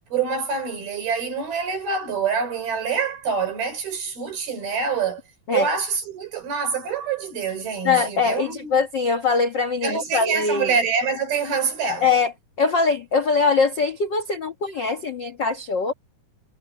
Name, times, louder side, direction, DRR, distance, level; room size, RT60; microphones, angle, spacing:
voice 1, 0.1-5.2 5.5-8.8 9.8-12.1, right 5 dB, 80° right, 6.7 m, -26 dB
voice 2, 7.8-10.7 12.0-15.9, left 4 dB, 90° left, 0.9 m, -22 dB
omnidirectional pair, 4.3 m